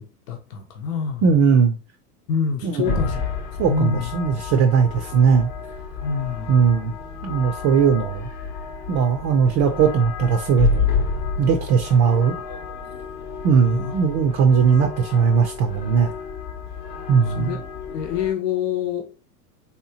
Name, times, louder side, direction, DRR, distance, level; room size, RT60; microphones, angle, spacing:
voice 1, 0.0-1.3 2.3-3.2 3.6-4.1 6.0-6.6 13.6-14.0 17.3-17.6 17.9-19.1, left 6 dB, 85° left, 0.9 m, -26 dB
voice 2, 1.2-1.8 2.6-3.0 3.6-5.5 6.5-6.9 7.2-8.3 8.9-10.9 11.4-12.3 13.4-16.2 17.1-17.6, right 6 dB, 35° right, 0.4 m, -19 dB
sound 1, 2.8-18.3, left 5 dB, 45° left, 0.8 m, -30 dB
3.4 x 2.8 x 2.7 m
supercardioid pair, 120°, 47 cm